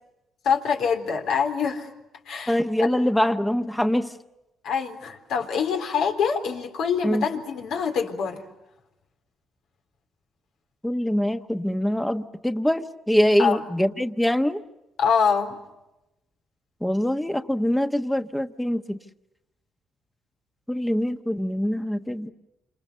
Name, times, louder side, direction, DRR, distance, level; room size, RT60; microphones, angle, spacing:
voice 1, 0.4-1.9 2.3-2.9 4.6-8.4 13.4-13.6 15.0-15.6, left 6 dB, 80° left, 4 dB, 3.9 m, -25 dB
voice 2, 2.5-4.1 7.0-7.3 10.8-14.6 16.8-19.0 20.7-22.3, equal, 5° left, 8 dB, 1.2 m, -24 dB
28.0 x 27.0 x 6.9 m, 0.95 s
cardioid pair, 90°, 0 cm